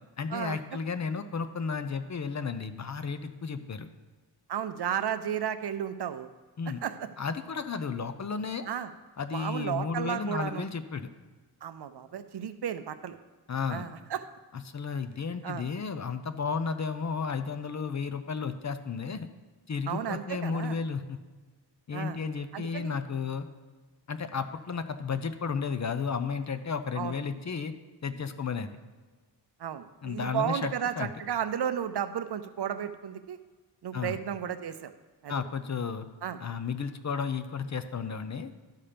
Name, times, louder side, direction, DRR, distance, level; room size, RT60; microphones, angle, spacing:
voice 1, 0.2-3.9 6.6-6.8 7.2-8.7 9.2-11.1 13.5-13.9 14.7-19.3 19.7-21.2 21.9-23.5 24.1-27.7 28.0-28.7 30.0-31.1 33.9-34.2 35.3-36.1 36.4-38.5, left 5 dB, 40° left, 10 dB, 0.5 m, -33 dB
voice 2, 4.5-6.3 6.8-7.1 8.7-8.9 9.3-10.7 11.6-13.2 13.7-14.2 15.4-15.7 19.9-20.8 21.9-22.2 22.5-23.0 27.0-27.2 29.6-33.4 33.8-34.9 35.2-35.3 36.2-36.4, right 9 dB, 60° right, 11 dB, 0.6 m, -33 dB
12.0 x 5.7 x 5.1 m, 1.4 s
wide cardioid pair, 165°, 45 cm